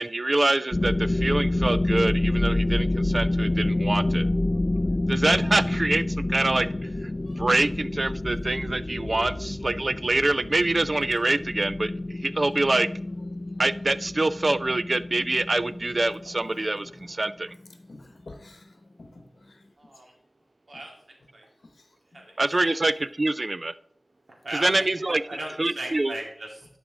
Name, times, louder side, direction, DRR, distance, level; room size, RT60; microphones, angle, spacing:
voice 1, 0.0-4.3 5.1-6.0 6.3-6.7 7.0-7.1 7.4-12.9 13.6-17.5 22.4-23.7 24.6-25.2 25.6-26.1, right 2 dB, 45° right, 15 dB, 0.4 m, -25 dB
sound 1, 0.7-17.3, left 2 dB, 40° left, 0.3 m, -28 dB
voice 2, 16.5-17.1 17.9-19.6 21.6-21.9 22.1-22.3, left 2 dB, 75° left, 5 dB, 0.9 m, -50 dB
voice 3, 19.8-20.1 20.7-21.5 22.1-22.4 22.6-22.7 24.3-26.7, right 1 dB, 75° right, 0 dB, 2.0 m, -38 dB
11.0 x 5.1 x 3.7 m, 0.67 s
wide cardioid pair, 55°, 0 cm